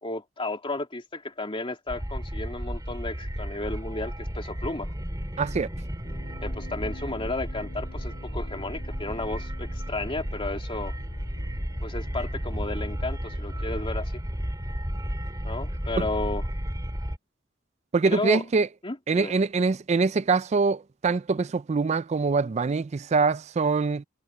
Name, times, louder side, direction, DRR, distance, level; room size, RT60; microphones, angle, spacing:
voice 1, 0.0-4.9 6.4-10.9 11.8-14.1 15.4-16.4 18.1-18.4 18.8-19.3, left 2 dB, 30° left, 2.8 m, -33 dB
sound 1, 1.9-17.2, equal, 20° right, 3.4 m, -33 dB
voice 2, 5.4-5.7 16.0-16.1 17.9-18.7 19.1-24.0, right 4 dB, 35° right, 0.4 m, -24 dB
sound 2, 6.0-13.9, equal, 60° left, 4.9 m, -45 dB
head